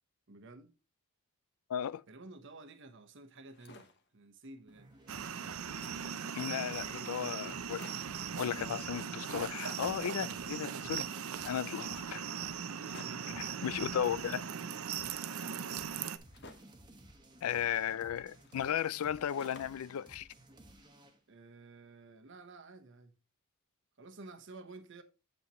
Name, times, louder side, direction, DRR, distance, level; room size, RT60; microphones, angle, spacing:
voice 1, 0.3-0.7 2.1-4.9 6.9-7.4 13.0-13.6 15.3-15.7 21.3-23.2 24.0-25.0, right 2 dB, 60° right, 1.0 m, -52 dB
voice 2, 1.7-2.0 6.3-7.8 8.4-11.1 11.4-12.3 13.4-14.4 17.4-20.3, left 9 dB, 85° left, 0.4 m, -35 dB
sound 1, 3.3-4.1 4.6-4.7 4.9-6.1 6.8-6.9 7.1-7.2 7.5-8.3 9.0-9.8 10.0-11.3 12.7-13.4 14.3-16.8 17.6-19.9 20.3-21.2, left 3 dB, 55° left, 1.0 m, -58 dB
sound 2, 4.7-21.2, right 1 dB, 20° right, 1.1 m, -57 dB
sound 3, 5.1-16.2, right 7 dB, 80° right, 0.6 m, -39 dB
8.4 x 7.5 x 3.0 m
head